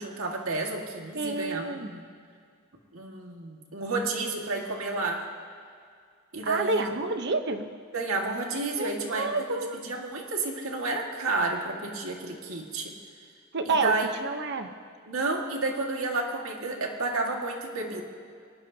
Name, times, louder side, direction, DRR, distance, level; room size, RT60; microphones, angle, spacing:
voice 1, 0.0-2.0 2.9-5.3 6.3-7.0 7.9-9.3 9.7-12.9 13.7-14.1 15.1-18.0, right 3 dB, 75° right, 1 dB, 2.0 m, -31 dB
voice 2, 1.1-1.9 6.4-7.7 8.8-9.8 13.5-13.9 14.2-14.7, right 3 dB, 55° right, 7 dB, 1.0 m, -29 dB
23.0 x 19.0 x 2.9 m, 2.2 s
head